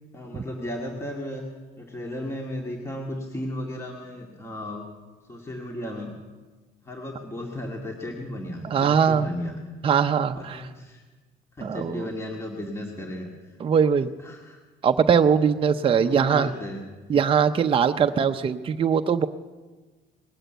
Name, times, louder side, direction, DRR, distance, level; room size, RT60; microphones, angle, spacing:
voice 1, 0.1-1.4 1.8-4.8 5.3-6.1 6.8-9.6 10.3-11.0 11.6-13.3 14.0-14.6 15.4-16.9, left 1 dB, 15° left, 0 dB, 2.0 m, -35 dB
voice 2, 8.6-9.3 9.8-10.6 11.6-12.1 13.6-14.1 14.8-16.5 17.1-19.3, right 7 dB, 30° right, 7 dB, 0.6 m, -21 dB
19.5 x 8.0 x 9.1 m, 1.3 s
cardioid pair, 110°, 17 cm